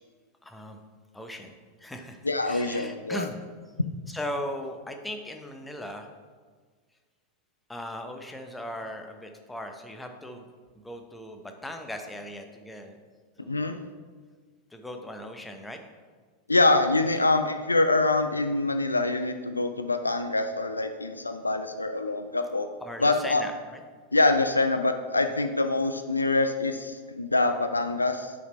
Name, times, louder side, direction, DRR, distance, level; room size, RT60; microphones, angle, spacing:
voice 1, 0.4-0.8 1.1-3.4 4.1-6.1 7.7-10.5 10.8-13.0 13.4-13.9 14.7-15.8 17.1-17.2 22.8-23.8, left 1 dB, 5° left, 5 dB, 0.7 m, -38 dB
voice 2, 2.2-3.3 13.5-13.8 16.5-22.7 23.0-23.4 24.1-28.3, left 2 dB, 80° left, 8 dB, 0.3 m, -25 dB
6.9 x 4.3 x 4.3 m, 1.5 s
figure-of-eight pair, 90°, 0 cm